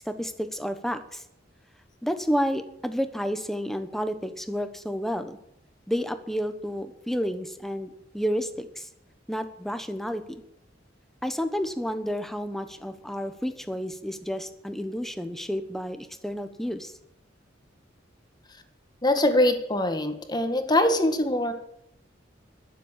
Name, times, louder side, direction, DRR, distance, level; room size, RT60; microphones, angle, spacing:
voice 1, 0.0-1.2 2.0-5.4 5.9-8.9 9.3-10.4 11.2-16.9, equal, ahead, 9 dB, 1.2 m, -30 dB
voice 2, 19.0-21.5, left 1 dB, 20° left, 7 dB, 1.7 m, -23 dB
21.0 x 7.5 x 7.5 m, 0.79 s
head